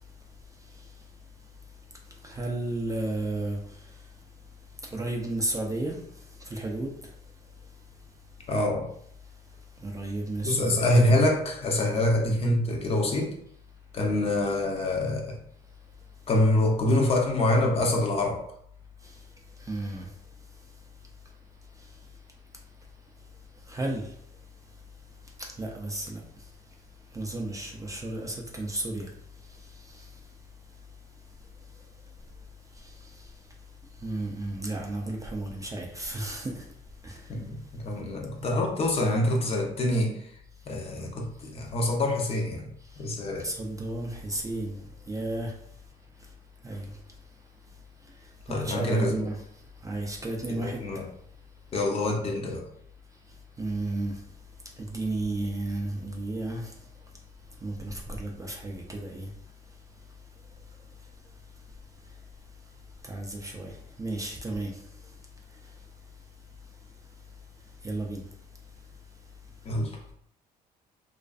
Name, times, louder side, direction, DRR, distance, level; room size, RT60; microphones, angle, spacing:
voice 1, 2.2-3.6 4.9-6.0 6.5-6.9 9.8-10.9 12.2-12.4 19.7-20.1 23.7-24.0 25.6-26.2 27.1-29.1 34.0-36.6 37.0-37.2 43.4-45.5 46.6-46.9 48.6-49.4 49.8-50.8 53.6-54.1 54.9-56.7 57.6-59.3 63.1-63.7 64.0-64.7 67.8-68.2, right 2 dB, 20° right, 0.4 m, -32 dB
voice 2, 8.5-8.9 10.4-13.3 13.9-15.4 16.3-18.4 37.3-40.1 40.7-42.7 43.0-43.5 48.5-49.1 50.5-51.0 51.7-52.6 69.7-69.9, left 1 dB, 35° left, 0.6 m, -25 dB
2.4 x 2.4 x 2.3 m
cardioid pair, 110°, 17 cm